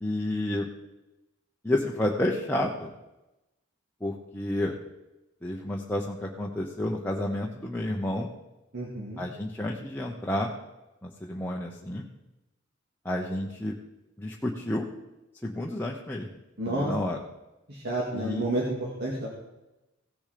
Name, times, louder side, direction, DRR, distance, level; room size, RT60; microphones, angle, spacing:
voice 1, 0.0-0.7 1.6-2.9 4.0-4.8 5.4-8.3 9.2-10.5 11.0-12.1 13.0-13.7 14.2-14.9 15.4-16.3 16.7-17.2 18.1-18.4, left 1 dB, 10° left, -2 dB, 0.9 m, -30 dB
voice 2, 8.7-9.2 16.6-16.9 17.7-19.4, right 1 dB, 50° right, -3 dB, 2.1 m, -30 dB
16.5 x 7.1 x 5.1 m, 0.99 s
head